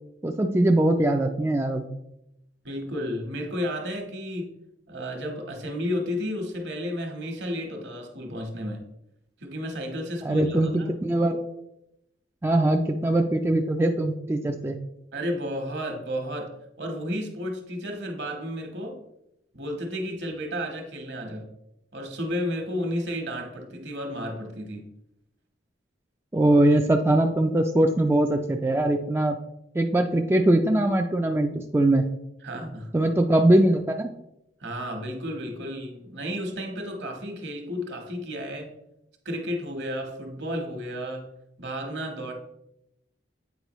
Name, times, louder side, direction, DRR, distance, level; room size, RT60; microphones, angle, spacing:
voice 1, 0.2-1.8 10.2-11.4 12.4-14.8 26.3-29.4 29.7-32.1 32.9-34.1, right 1 dB, 15° right, 3 dB, 0.3 m, -21 dB
voice 2, 2.6-4.5 4.9-8.8 9.4-10.9 15.1-19.0 19.5-21.5 21.9-24.9 32.4-32.9 34.6-38.7 39.2-41.3 41.6-42.3, equal, 65° right, 4 dB, 1.2 m, -32 dB
8.1 x 4.7 x 3.0 m, 0.83 s
head